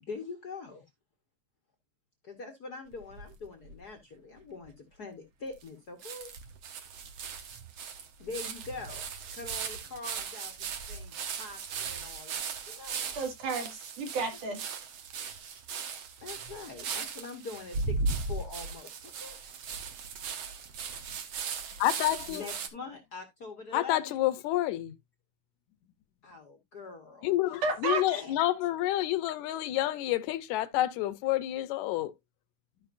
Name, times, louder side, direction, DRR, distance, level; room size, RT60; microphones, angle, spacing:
voice 1, 0.0-0.8 2.2-6.3 8.2-9.1 9.3-13.1 16.2-19.3 22.3-24.2 26.2-27.6 28.1-28.5, left 3 dB, 60° left, 1.0 m, -44 dB
sound 1, 2.9-3.8 4.4-4.5 4.6-4.7 5.6-5.7 6.0-22.7, right 5 dB, 65° right, 1.3 m, -38 dB
voice 2, 13.1-14.6 27.6-28.2, right 4 dB, 85° right, 3.5 m, -32 dB
voice 3, 21.8-22.5 23.7-25.0 27.2-32.1, left 14 dB, 75° left, 2.0 m, -29 dB
13.0 x 5.3 x 2.5 m
omnidirectional pair, 3.5 m